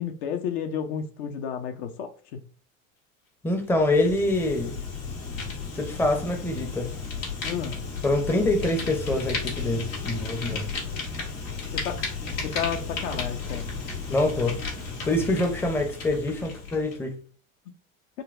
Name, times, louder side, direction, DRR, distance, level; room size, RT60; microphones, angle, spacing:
voice 1, 0.0-2.4 7.4-7.8 11.8-12.0 12.4-13.6, left 8 dB, 50° left, 0.6 m, -31 dB
voice 2, 3.4-4.7 5.7-6.9 8.0-10.6 14.1-14.6 15.1-17.2, left 1 dB, 5° left, 0.6 m, -25 dB
Fire, 3.7-17.0, left 4 dB, 75° left, 1.5 m, -34 dB
3.9 x 2.2 x 2.5 m
figure-of-eight pair, 80°, 41 cm